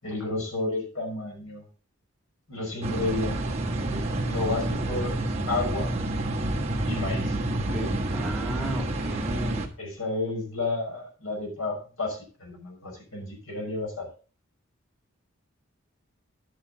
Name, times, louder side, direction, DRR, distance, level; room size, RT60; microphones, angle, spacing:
voice 1, 0.0-1.7 2.5-5.9 6.9-7.4 9.8-14.1, left 2 dB, 80° left, 1 dB, 5.7 m, -32 dB
sound 1, 2.8-9.7, right 1 dB, 30° right, 1.4 m, -29 dB
voice 2, 7.7-9.7, right 1 dB, 5° right, -3 dB, 2.3 m, -34 dB
11.5 x 8.5 x 3.9 m, 0.37 s
head